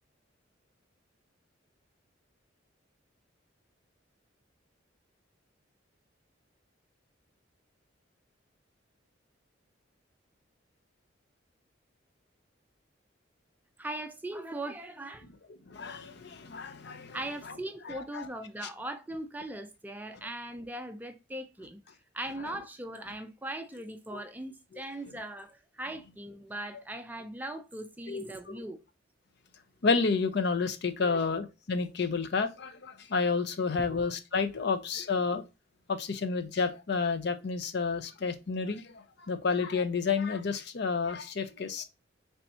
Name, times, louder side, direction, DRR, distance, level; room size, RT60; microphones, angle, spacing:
voice 1, 13.8-15.2 17.1-21.8 22.1-28.8 31.0-31.2 33.9-34.0, right 1 dB, 10° right, 0.4 m, -39 dB
voice 2, 15.7-17.2 17.4-17.6 17.8-18.3 22.4-22.5 24.1-24.2 24.7-24.8 28.1-28.6 29.8-35.4 35.9-41.8, left 4 dB, 60° left, 0.5 m, -30 dB
3.4 x 2.6 x 4.1 m
head